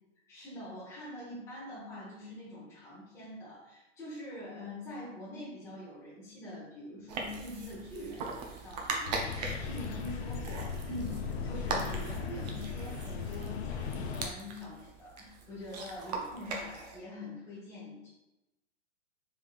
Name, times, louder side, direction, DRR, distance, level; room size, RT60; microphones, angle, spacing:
voice 1, 0.3-18.1, left 1 dB, 5° left, -11 dB, 0.8 m, -44 dB
sound 1, 7.1-17.0, right 3 dB, 35° right, 0.4 m, -40 dB
sound 2, 9.1-14.3, left 6 dB, 60° left, 0.5 m, -37 dB
3.4 x 3.2 x 2.4 m, 0.98 s
hypercardioid pair, 145°, 37 cm